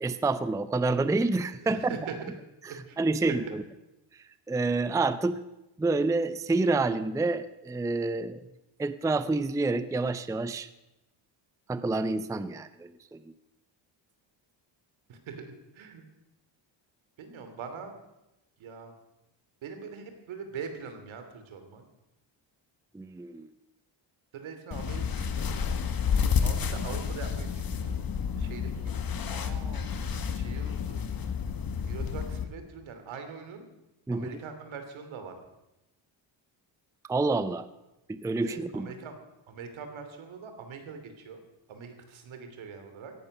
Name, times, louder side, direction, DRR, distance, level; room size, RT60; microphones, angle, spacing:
voice 1, 0.0-2.0 2.6-3.6 4.5-5.4 5.8-8.4 8.8-10.7 11.7-13.3 22.9-23.5 34.1-34.3 37.1-37.7 38.1-38.9, right 3 dB, 5° right, 13 dB, 0.5 m, -28 dB
voice 2, 1.6-2.3 2.7-3.0 3.3-3.4 15.1-16.0 17.2-17.9 18.6-18.9 19.6-21.8 24.3-25.7 26.4-28.1 28.3-29.0 29.3-29.9 30.3-31.0 31.8-33.7 34.1-35.3 38.4-39.2 39.5-41.4 41.7-43.1, right 6 dB, 75° right, 7 dB, 2.9 m, -42 dB
sound 1, 24.7-32.4, left 6 dB, 45° left, 1.6 m, -30 dB
17.0 x 11.5 x 6.7 m, 0.94 s
cardioid pair, 110°, 48 cm